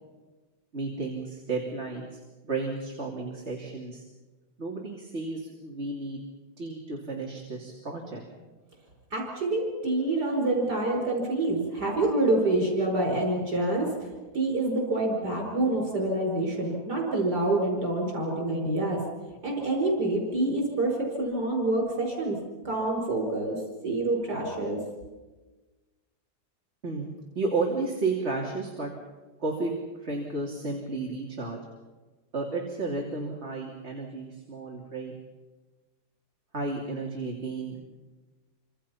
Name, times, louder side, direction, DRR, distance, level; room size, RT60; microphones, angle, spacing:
voice 1, 0.7-4.0 4.6-6.2 6.6-8.2 26.8-28.9 29.4-31.6 32.3-35.1 36.5-37.8, right 3 dB, 40° right, -1 dB, 3.1 m, -32 dB
voice 2, 9.1-19.0 19.4-22.4 22.6-24.8, right 2 dB, 75° right, 1 dB, 5.7 m, -27 dB
28.0 x 25.5 x 5.8 m, 1.2 s
omnidirectional pair, 1.8 m